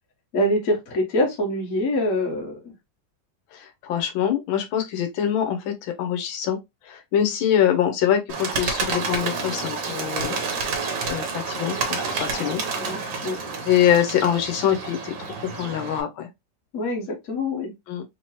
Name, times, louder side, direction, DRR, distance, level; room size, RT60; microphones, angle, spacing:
voice 1, 0.3-2.7 12.8-13.4 16.7-17.7, left 1 dB, 50° left, 1.4 m, -25 dB
voice 2, 3.5-6.6 6.8-10.4 11.1-13.1 13.7-15.1 15.4-16.3 17.9-18.0, left 10 dB, 85° left, 1.5 m, -24 dB
Bird, 8.3-16.0, right 4 dB, 70° right, 1.6 m, -29 dB
3.8 x 2.9 x 2.9 m
omnidirectional pair, 2.1 m